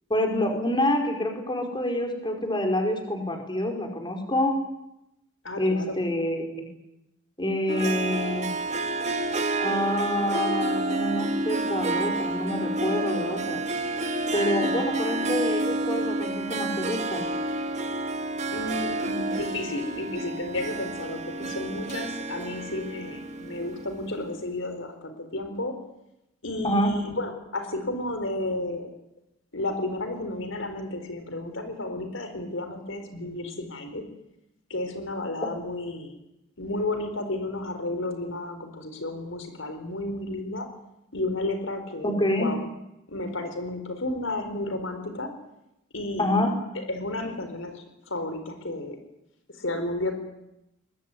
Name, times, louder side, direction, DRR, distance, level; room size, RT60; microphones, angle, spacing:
voice 1, 0.1-4.6 5.6-6.6 7.4-8.5 9.6-13.6 14.3-17.2 26.6-26.9 42.0-42.5 46.2-46.5, left 1 dB, 25° left, 3 dB, 5.0 m, -27 dB
voice 2, 5.4-6.0 18.5-25.7 26.4-28.9 29.5-34.0 34.7-36.1 36.6-40.7 41.1-42.6 43.1-45.3 45.9-46.5 46.9-49.0 49.5-50.1, left 2 dB, 75° left, 7 dB, 4.5 m, -32 dB
Harp, 7.7-24.2, right 2 dB, 35° right, 2.2 m, -29 dB
24.0 x 22.0 x 9.7 m, 0.87 s
head